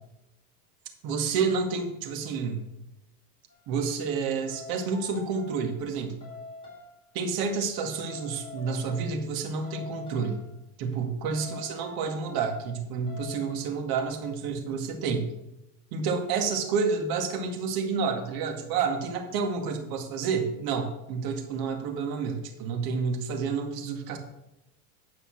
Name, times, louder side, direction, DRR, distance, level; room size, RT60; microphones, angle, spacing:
voice 1, 1.0-2.6 3.7-6.2 7.1-10.4 10.8-15.3 15.9-24.2, right 5 dB, 50° right, 4 dB, 2.1 m, -29 dB
sound 1, 3.5-3.7 4.5-5.8 6.2-6.9 7.9-9.4 9.6-10.5 11.4-12.5 13.1-13.7, left 2 dB, 10° left, 3.9 m, -44 dB
9.9 x 5.6 x 6.0 m, 0.89 s
supercardioid pair, 120°, 45 cm